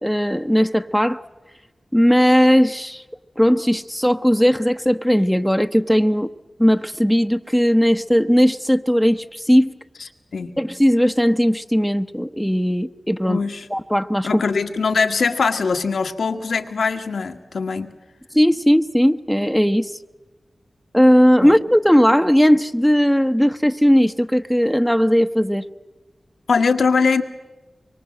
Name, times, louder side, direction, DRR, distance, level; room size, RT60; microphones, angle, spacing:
voice 1, 0.0-1.2 1.9-3.0 3.4-6.3 6.6-9.8 10.6-13.4 13.7-14.4 18.3-20.0 20.9-25.7, equal, ahead, 0.9 m, -17 dB
voice 2, 13.3-13.7 14.2-17.9 21.4-21.5 26.5-27.2, left 5 dB, 90° left, 1.6 m, -21 dB
24.5 x 23.5 x 7.8 m
cardioid pair, 45°, 0 cm